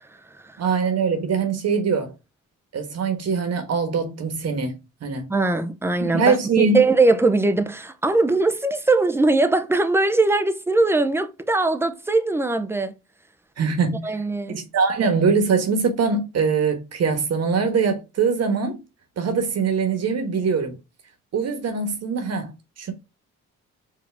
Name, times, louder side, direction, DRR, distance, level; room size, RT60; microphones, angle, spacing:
voice 1, 0.6-2.1 2.7-5.3 6.1-6.8 13.6-14.2 14.5-18.8 19.2-20.8 21.3-22.5 22.8-22.9, right 5 dB, 55° right, 1.3 m, -22 dB
voice 2, 5.3-12.9 14.0-14.6, right 2 dB, 10° right, 0.6 m, -21 dB
4.9 x 2.8 x 3.4 m
cardioid pair, 90°, 30 cm